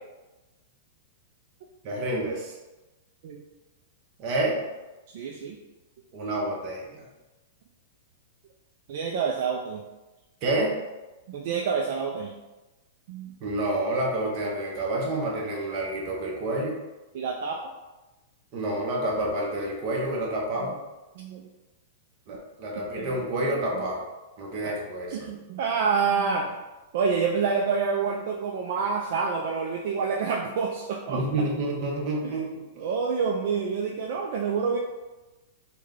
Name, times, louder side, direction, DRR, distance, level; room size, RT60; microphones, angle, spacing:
voice 1, 1.8-2.5 4.2-4.6 6.1-7.1 10.4-10.8 13.4-16.8 18.5-20.8 22.3-24.0 24.4-25.3 31.1-32.8, right 1 dB, 30° right, -2 dB, 0.7 m, -29 dB
voice 2, 5.1-5.6 8.9-9.8 11.3-12.3 13.1-13.4 17.1-17.6 20.6-20.7 21.2-21.5 23.0-23.2 23.7-23.8 24.6-24.7 25.1-26.6 26.9-31.2 32.2-32.3 32.8-34.8, right 5 dB, 50° right, 0 dB, 0.3 m, -27 dB
3.2 x 2.1 x 3.6 m, 1.1 s
supercardioid pair, 170°, 0 cm